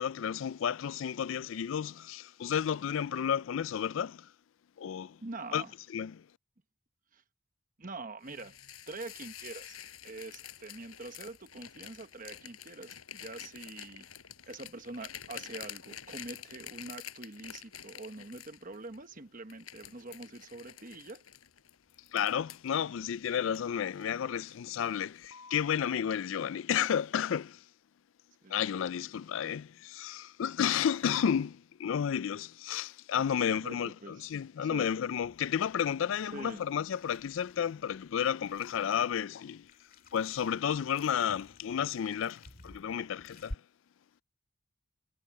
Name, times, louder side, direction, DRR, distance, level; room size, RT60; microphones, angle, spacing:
voice 1, 0.0-4.3 4.8-5.2 5.5-5.6 5.9-6.3 22.1-27.6 28.5-39.7 40.1-43.6, left 8 dB, 65° left, 0.3 m, -32 dB
voice 2, 5.2-5.7 7.1-7.2 7.8-8.6 8.9-9.8 10.0-14.1 14.5-21.2 28.4-28.7 33.4-34.2 34.6-34.9 36.3-36.6, right 3 dB, 40° right, 1.1 m, -45 dB
sound 1, 8.2-19.0 19.5-22.7 23.2-24.2 24.5-24.8 25.2-25.8, left 10 dB, 90° left, 7.1 m, -48 dB
sound 2, 35.0-43.6, left 1 dB, 45° left, 2.1 m, -52 dB
head